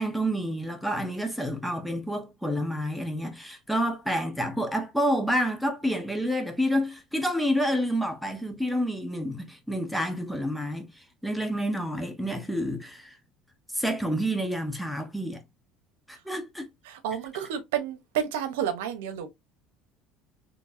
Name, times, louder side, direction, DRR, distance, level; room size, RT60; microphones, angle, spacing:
voice 1, 0.0-10.9 11.2-13.2 13.7-15.4 16.1-16.6, equal, ahead, 1.2 m, -29 dB
voice 2, 16.8-19.3, right 9 dB, 90° right, 1.0 m, -30 dB
4.5 x 3.3 x 2.7 m
supercardioid pair, 105°, 0 cm